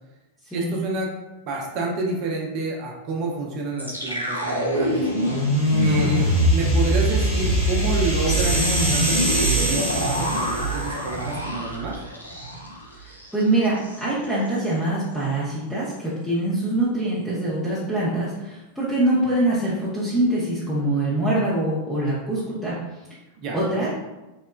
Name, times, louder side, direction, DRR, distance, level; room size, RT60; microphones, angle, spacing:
voice 1, 0.5-1.1 1.5-5.1 5.8-12.0 23.4-23.6, right 2 dB, 40° right, -1 dB, 0.5 m, -29 dB
sound 1, 3.8-12.8 13.1-13.3 13.6-14.0, right 1 dB, 85° right, 0.4 m, -23 dB
sound 2, 5.1-11.1, right 1 dB, 50° left, 1.1 m, -28 dB
voice 2, 5.7-6.3 13.3-22.8 23.5-23.9, right 1 dB, 5° left, -10 dB, 0.6 m, -24 dB
2.9 x 2.1 x 2.2 m, 1.0 s
figure-of-eight pair, 90°, 0 cm